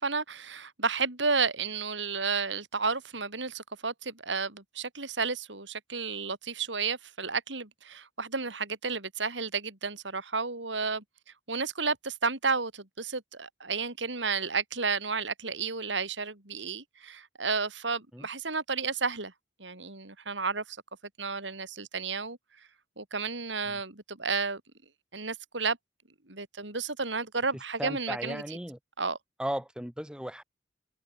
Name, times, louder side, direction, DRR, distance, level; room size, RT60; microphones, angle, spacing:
voice 1, 0.0-11.0 11.5-19.3 19.6-20.8 21.2-22.4 23.0-24.6 25.1-25.8 26.3-28.4 29.0-29.2, right 4 dB, 85° right, 4.5 m, -32 dB
voice 2, 27.8-28.8 29.4-30.4, equal, 5° right, 1.6 m, -36 dB
head